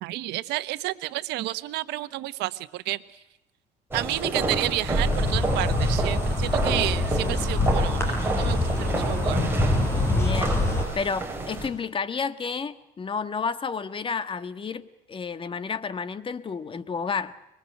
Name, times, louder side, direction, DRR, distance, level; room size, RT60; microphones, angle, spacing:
voice 1, 0.0-3.0 3.9-9.4, right 17 dB, 90° right, 14 dB, 1.2 m, -31 dB
sound 1, 3.9-11.7, right 2 dB, 15° right, 6.0 m, -29 dB
Insect, 4.8-10.8, left 2 dB, 15° left, 7.4 m, -25 dB
voice 2, 10.1-10.6 10.9-17.3, left 5 dB, 30° left, 12 dB, 1.5 m, -31 dB
25.5 x 22.0 x 7.9 m, 0.90 s
cardioid pair, 110°, 17 cm